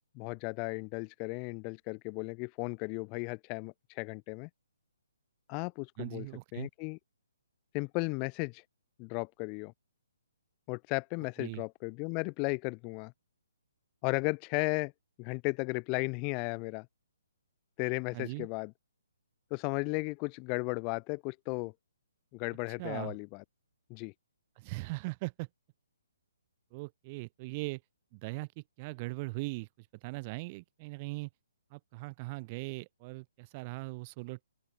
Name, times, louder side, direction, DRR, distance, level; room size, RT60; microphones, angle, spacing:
voice 1, 0.2-4.5 5.5-6.3 6.5-7.0 7.7-8.6 9.0-9.7 10.7-13.1 14.0-14.9 15.2-16.9 17.8-18.7 19.5-21.7 22.3-23.4 23.9-24.1, left 35 dB, 30° left, 0.5 m, -35 dB
voice 2, 6.0-6.7 11.4-11.6 18.1-18.5 22.8-23.1 24.6-25.5 26.7-27.8 28.1-31.3 31.7-34.4, right 25 dB, 30° right, 2.0 m, -40 dB
open air
hypercardioid pair, 145°, 0 cm